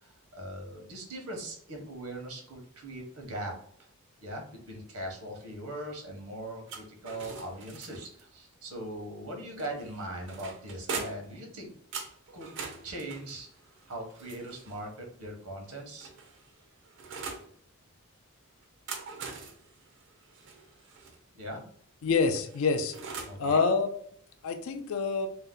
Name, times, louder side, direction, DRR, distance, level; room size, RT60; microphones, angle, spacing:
voice 1, 0.0-3.9 4.2-11.7 12.3-12.5 12.8-13.5 13.9-16.1 21.3-21.6 23.2-23.6, right 1 dB, 80° right, 2 dB, 0.9 m, -40 dB
sound 1, 6.7-8.2 9.6-11.4 11.9-14.8 15.7-17.5 18.6-21.2 22.3-23.4, right 5 dB, 55° right, 0.5 m, -42 dB
voice 2, 22.0-22.9 23.4-23.9 24.4-25.3, left 4 dB, 65° left, 7 dB, 0.4 m, -26 dB
2.7 x 2.1 x 3.6 m, 0.62 s
head